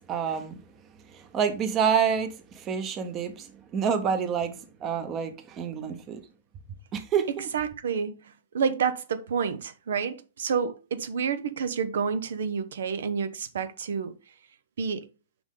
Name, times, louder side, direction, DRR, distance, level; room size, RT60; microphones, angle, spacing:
voice 1, 0.1-0.6 1.1-2.3 2.5-3.5 3.7-4.5 4.8-6.2 6.9-7.5, right 7 dB, 25° right, 0.9 m, -27 dB
voice 2, 7.5-8.2 8.5-14.1 14.8-15.1, right 6 dB, 75° right, 0.7 m, -29 dB
6.0 x 5.2 x 3.7 m
hypercardioid pair, 150°, 0 cm